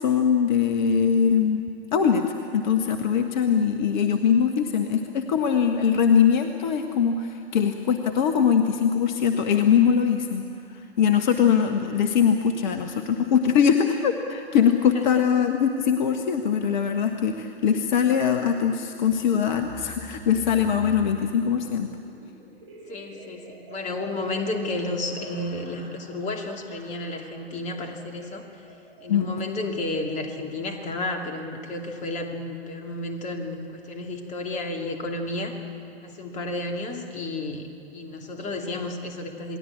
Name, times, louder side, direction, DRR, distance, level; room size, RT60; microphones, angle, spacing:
voice 1, 0.0-2.2 2.5-10.4 10.7-21.9 29.1-29.3, left 7 dB, 45° left, 6 dB, 1.4 m, -22 dB
sound 1, 19.0-31.6, right 2 dB, 60° right, 6.0 m, -47 dB
voice 2, 22.9-28.4 29.0-35.6 36.0-39.6, left 2 dB, 25° left, 4 dB, 2.6 m, -32 dB
28.5 x 20.0 x 8.7 m, 2.7 s
figure-of-eight pair, 110°, 31 cm